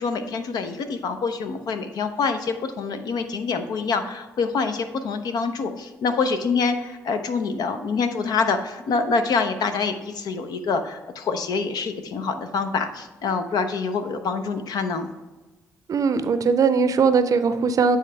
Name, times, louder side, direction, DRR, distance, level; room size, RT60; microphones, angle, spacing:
voice 1, 0.0-15.1, left 4 dB, 60° left, 8 dB, 0.7 m, -26 dB
voice 2, 15.9-18.0, right 5 dB, 50° right, 11 dB, 0.5 m, -20 dB
9.2 x 3.8 x 3.3 m, 1.2 s
hypercardioid pair, 40°, 7 cm